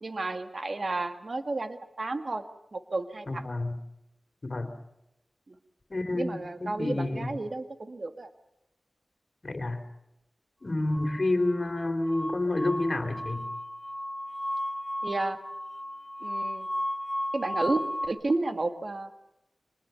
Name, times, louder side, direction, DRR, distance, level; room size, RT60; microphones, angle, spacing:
voice 1, 0.0-2.4 2.7-3.5 5.5-5.6 6.1-8.3 15.0-15.4 16.2-16.7 17.3-19.2, right 2 dB, 55° right, 8 dB, 1.8 m, -32 dB
voice 2, 3.3-3.8 4.4-4.7 5.9-7.3 9.4-9.8 10.6-13.5, left 2 dB, 45° left, 6 dB, 3.3 m, -29 dB
sound 1, 10.9-18.1, left 1 dB, 5° right, 5.3 m, -35 dB
25.0 x 20.5 x 6.9 m, 0.87 s
cardioid pair, 50°, 0 cm